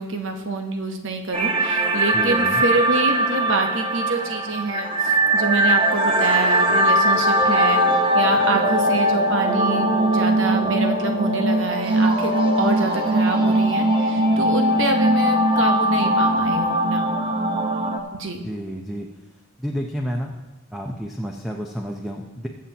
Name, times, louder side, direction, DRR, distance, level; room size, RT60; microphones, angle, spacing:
voice 1, 0.0-12.3 12.6-17.1 18.1-18.4, right 3 dB, 60° right, 4 dB, 1.1 m, -26 dB
sound 1, 1.3-18.0, right 1 dB, 25° right, 1.0 m, -20 dB
voice 2, 2.1-2.6 18.4-19.1 19.6-20.4 20.7-22.5, equal, ahead, 0 dB, 0.6 m, -30 dB
21.5 x 7.6 x 2.9 m, 1.1 s
head